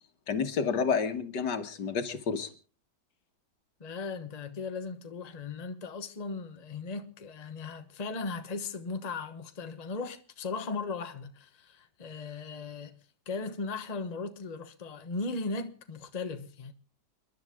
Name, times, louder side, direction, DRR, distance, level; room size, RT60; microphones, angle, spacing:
voice 1, 0.3-2.5, left 6 dB, 80° left, 2.0 m, -30 dB
voice 2, 3.8-13.0 13.3-16.7, left 4 dB, 25° left, 1.1 m, -37 dB
30.0 x 11.0 x 3.6 m
omnidirectional pair, 1.8 m